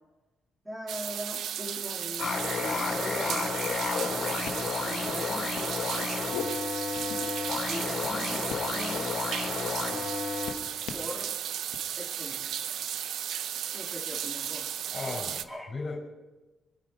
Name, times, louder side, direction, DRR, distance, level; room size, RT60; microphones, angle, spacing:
voice 1, 0.6-3.6 4.5-6.0 7.7-9.1 10.9-11.4 12.0-12.8 13.7-14.7 15.5-15.7, left 1 dB, 10° right, -3 dB, 3.1 m, -41 dB
sound 1, 0.9-15.4, right 9 dB, 70° right, 0.6 m, -35 dB
sound 2, 2.2-10.5, left 4 dB, 60° left, 3.7 m, -32 dB
sound 3, 3.8-4.1 4.4-4.6 5.1-5.3 5.6-6.4 7.0-7.6 8.0-9.0 9.4-9.7 10.0-11.1 11.7-12.0, left 8 dB, 85° left, 1.3 m, -41 dB
voice 2, 14.9-16.0, left 3 dB, 40° left, 1 dB, 5.0 m, -36 dB
25.5 x 9.7 x 4.8 m, 1.2 s
cardioid pair, 90°, 0 cm